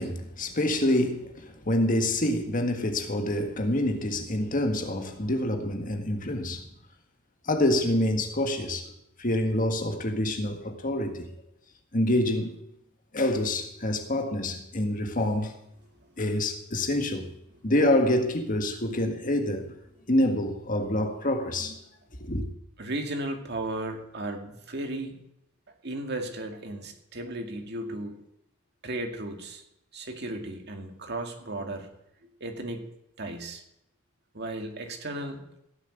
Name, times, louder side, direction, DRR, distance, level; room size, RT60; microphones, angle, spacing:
voice 1, 0.0-6.7 7.5-8.9 9.2-11.2 11.9-12.5 13.1-15.5 16.2-17.3 17.6-19.7 20.1-21.8 22.2-22.4, left 1 dB, 40° left, 1.7 m, -26 dB
voice 2, 22.8-25.2 25.8-28.2 28.8-29.6 29.9-31.9 32.4-32.8 33.2-33.6 34.3-35.4, right 1 dB, 55° right, 2.3 m, -35 dB
16.5 x 7.6 x 9.0 m
head